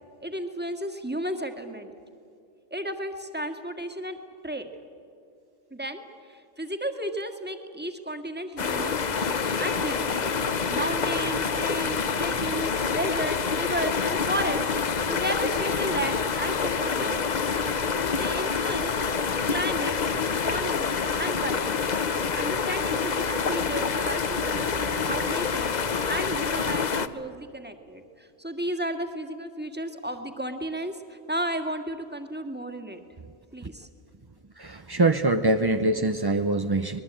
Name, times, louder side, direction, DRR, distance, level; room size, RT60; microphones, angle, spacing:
voice 1, 0.2-1.9 2.7-4.7 5.7-8.9 9.6-10.3 10.7-17.2 18.2-18.9 19.5-20.0 20.3-21.8 22.4-33.0 33.5-33.9, right 1 dB, 10° right, 6 dB, 1.7 m, -33 dB
sound 1, 8.6-27.1, left 5 dB, 40° left, 0.8 m, -27 dB
voice 2, 34.6-37.0, right 2 dB, 30° right, 8 dB, 0.5 m, -24 dB
24.5 x 20.5 x 8.9 m, 2.4 s
omnidirectional pair, 1.3 m